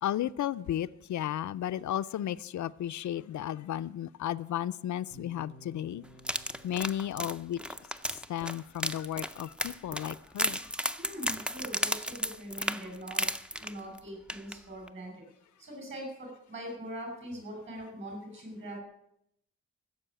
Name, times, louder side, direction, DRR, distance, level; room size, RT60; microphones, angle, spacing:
voice 1, 0.0-6.0 6.6-7.6 8.1-10.6, left 11 dB, 75° left, 13 dB, 0.5 m, -34 dB
sound 1, 5.1-9.2, equal, 65° right, 7.2 m, -56 dB
sound 2, 6.2-14.0 14.3-14.5 14.9-15.0, equal, 5° right, 0.4 m, -34 dB
voice 2, 10.9-13.3 13.6-15.1 15.6-18.8, equal, 40° right, 2 dB, 5.6 m, -42 dB
15.0 x 7.0 x 8.9 m, 0.77 s
wide cardioid pair, 175°, 29 cm